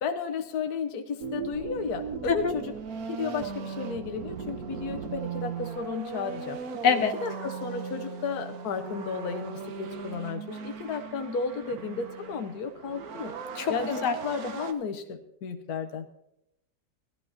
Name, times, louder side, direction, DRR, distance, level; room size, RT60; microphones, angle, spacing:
voice 1, 0.0-2.7 3.1-6.6 7.2-13.3 13.7-16.0, left 5 dB, 70° left, 7 dB, 1.4 m, -33 dB
sound 1, 1.2-14.7, right 6 dB, 65° right, 1.4 m, -38 dB
voice 2, 6.8-7.2 13.6-14.1, left 6 dB, 85° left, 6 dB, 1.6 m, -25 dB
18.5 x 13.5 x 2.8 m, 0.81 s
omnidirectional pair, 1.7 m